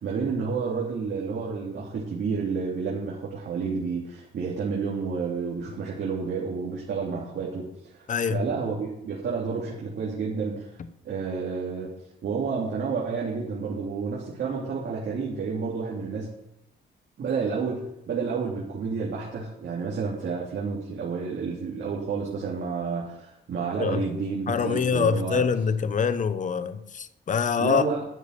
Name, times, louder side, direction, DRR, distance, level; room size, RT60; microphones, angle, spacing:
voice 1, 0.0-7.7 8.0-10.8 11.0-11.9 12.2-16.3 17.2-25.5 27.6-28.1, right 5 dB, 60° right, 3.0 m, -30 dB
voice 2, 8.1-8.4 23.8-24.0 24.5-27.8, left 6 dB, 40° left, 0.9 m, -25 dB
11.0 x 6.9 x 6.7 m
cardioid pair, 90°, 20 cm